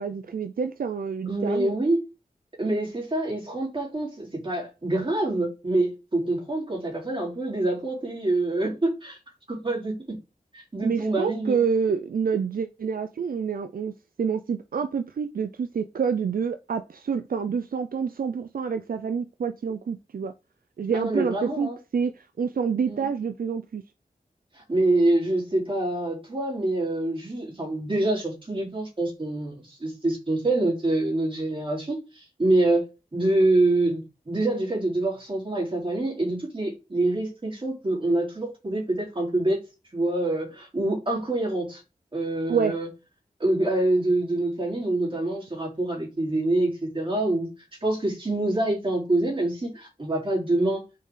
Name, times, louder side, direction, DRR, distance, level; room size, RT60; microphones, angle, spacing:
voice 1, 0.0-1.7 10.8-13.9 14.2-20.3 20.8-23.8 42.5-42.8, right 6 dB, 75° right, 0.5 m, -27 dB
voice 2, 1.3-2.0 2.6-9.2 9.5-10.2 10.7-11.6 20.9-21.8 22.9-23.0 24.5-32.8 33.1-39.6 39.9-41.8 42.1-42.9 43.4-47.5 47.8-50.8, right 2 dB, 35° right, 3.7 m, -26 dB
6.6 x 5.0 x 3.8 m
wide cardioid pair, 95°, 15 cm